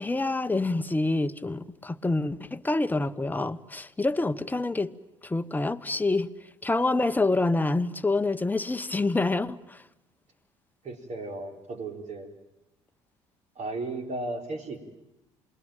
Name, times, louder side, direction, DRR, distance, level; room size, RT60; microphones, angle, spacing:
voice 1, 0.0-4.9 5.2-6.3 6.6-9.8, left 2 dB, 10° left, 1.1 m, -27 dB
voice 2, 10.8-12.3 13.6-14.8, right 2 dB, 50° right, 4.3 m, -35 dB
27.0 x 21.5 x 9.1 m
hypercardioid pair, 60°, 15 cm